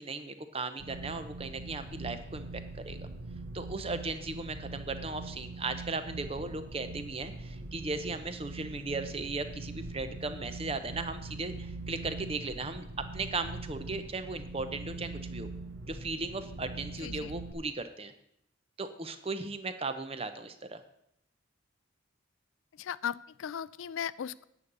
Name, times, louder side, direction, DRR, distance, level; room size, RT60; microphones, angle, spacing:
voice 1, 0.0-3.1 3.5-12.8 13.1-15.5 15.9-18.1 18.8-20.8, right 3 dB, 30° right, 10 dB, 0.8 m, -37 dB
sound 1, 0.8-17.5, right 2 dB, 70° right, 1.5 m, -42 dB
voice 2, 17.0-17.3 22.7-24.4, left 8 dB, 80° left, 19 dB, 0.4 m, -37 dB
9.5 x 5.5 x 8.1 m, 0.78 s
head